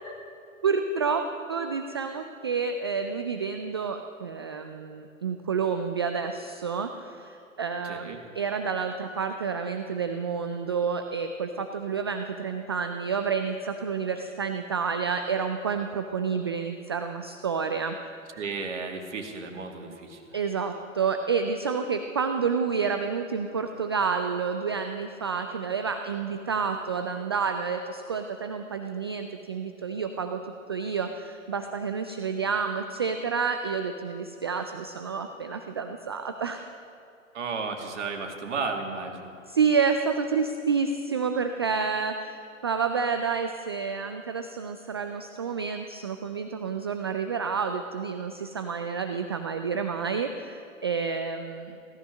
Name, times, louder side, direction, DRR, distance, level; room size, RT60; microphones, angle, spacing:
voice 1, 0.6-1.2 1.5-18.0 20.3-36.6 39.5-51.8, right 5 dB, 20° right, 6 dB, 0.3 m, -29 dB
voice 2, 7.8-8.2 18.4-20.2 37.3-39.3, right 4 dB, 60° right, 3 dB, 2.4 m, -33 dB
16.5 x 13.0 x 6.3 m, 2.6 s
figure-of-eight pair, 120°, 41 cm